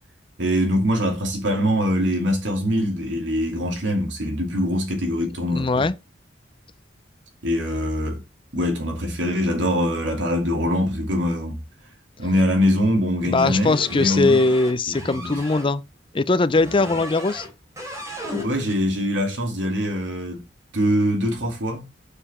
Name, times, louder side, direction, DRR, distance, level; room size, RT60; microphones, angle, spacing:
voice 1, 0.4-5.9 7.4-8.2 8.5-11.6 12.2-14.4 14.9-15.4 18.4-20.4 20.7-21.9, equal, 90° right, 2.7 m, -23 dB
voice 2, 5.5-5.9 13.2-15.8 16.1-17.5, left 3 dB, 30° left, 0.5 m, -20 dB
sound 1, 13.5-15.7 16.5-17.5 17.8-18.8, left 1 dB, 15° right, 3.2 m, -35 dB
7.2 x 6.7 x 4.3 m
head